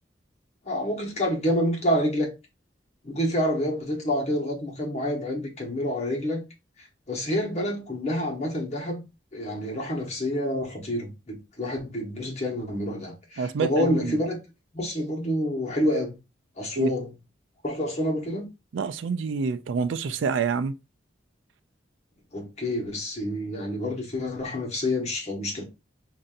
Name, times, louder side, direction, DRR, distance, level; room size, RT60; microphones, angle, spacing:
voice 1, 0.7-2.3 3.0-6.4 6.8-9.0 9.3-14.4 14.7-16.2 16.6-17.1 17.6-18.5 22.3-25.6, left 1 dB, 35° left, 1.2 m, -28 dB
voice 2, 13.4-14.2 16.8-16.9 18.7-20.7, right 5 dB, 80° right, 0.4 m, -27 dB
5.2 x 2.7 x 2.4 m
head